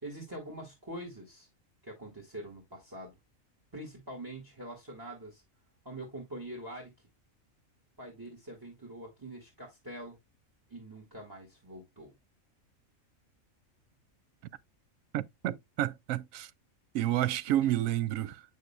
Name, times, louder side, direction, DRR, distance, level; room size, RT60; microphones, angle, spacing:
voice 1, 0.0-1.5 1.8-3.1 3.7-5.4 5.8-6.9 8.0-10.2 10.7-12.1, right 1 dB, 15° right, 1.8 m, -44 dB
voice 2, 15.1-16.5 16.9-18.4, right 13 dB, 75° right, 1.0 m, -30 dB
8.2 x 6.5 x 2.2 m
omnidirectional pair, 1.4 m